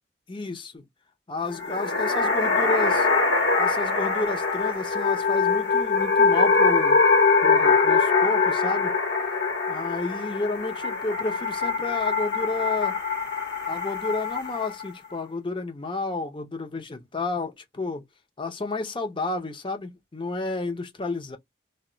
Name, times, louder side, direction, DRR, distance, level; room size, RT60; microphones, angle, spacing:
voice 1, 0.3-0.8 1.3-3.1 3.6-7.0 7.4-9.0 9.7-13.0 13.7-18.0 18.4-21.4, left 3 dB, 30° left, 0.6 m, -31 dB
sound 1, 1.5-14.9, left 4 dB, 75° left, 0.9 m, -23 dB
2.2 x 2.1 x 3.7 m
head